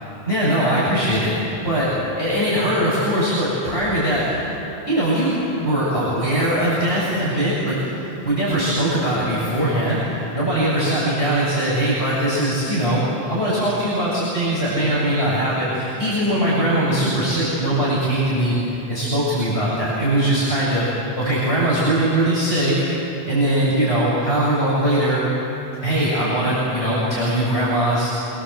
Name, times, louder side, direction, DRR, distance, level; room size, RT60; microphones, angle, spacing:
voice 1, 0.3-4.5 4.9-20.9 21.2-22.7 23.3-25.2 25.8-28.1, right 1 dB, 75° left, -9 dB, 7.4 m, -21 dB
25.5 x 25.0 x 7.8 m, 3.0 s
omnidirectional pair, 1.1 m